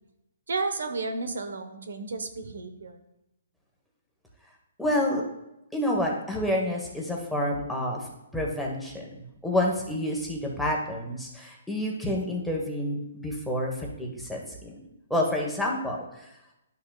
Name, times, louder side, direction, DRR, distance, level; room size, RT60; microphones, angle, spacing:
voice 1, 0.5-3.0, right 3 dB, 80° right, 7 dB, 1.0 m, -32 dB
voice 2, 4.8-5.2 5.7-9.1 9.4-14.8 15.1-16.2, left 1 dB, ahead, -2 dB, 1.2 m, -29 dB
11.5 x 5.7 x 2.4 m, 0.89 s
hypercardioid pair, 150°, 0 cm